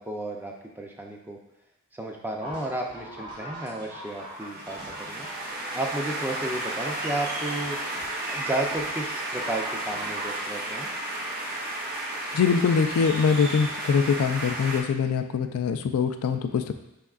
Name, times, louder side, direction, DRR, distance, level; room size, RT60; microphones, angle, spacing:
voice 1, 0.0-1.4 1.9-5.3 5.7-7.8 8.3-10.9, right 1 dB, 10° right, 1 dB, 0.4 m, -33 dB
sound 1, 2.4-10.4, right 1 dB, 90° right, 1.5 m, -41 dB
sound 2, 4.1-14.8, right 1 dB, 40° right, 0.7 m, -33 dB
voice 2, 12.3-16.7, left 6 dB, 70° left, 7 dB, 0.3 m, -23 dB
5.1 x 3.5 x 2.3 m, 0.91 s
head